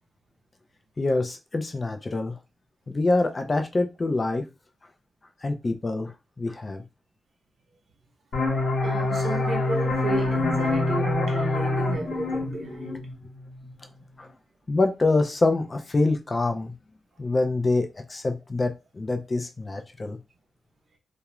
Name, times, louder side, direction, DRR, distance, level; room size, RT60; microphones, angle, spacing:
voice 1, 1.0-2.3 2.9-4.4 5.4-6.8 12.9-13.0 14.2-14.3 14.7-16.7 17.2-20.2, left 2 dB, 30° left, 0.3 m, -25 dB
sound 1, 8.3-13.7, left 2 dB, 70° left, 0.9 m, -26 dB
voice 2, 8.8-13.1, right 2 dB, 50° right, 0.7 m, -31 dB
2.3 x 2.0 x 2.9 m
wide cardioid pair, 110°, 0 cm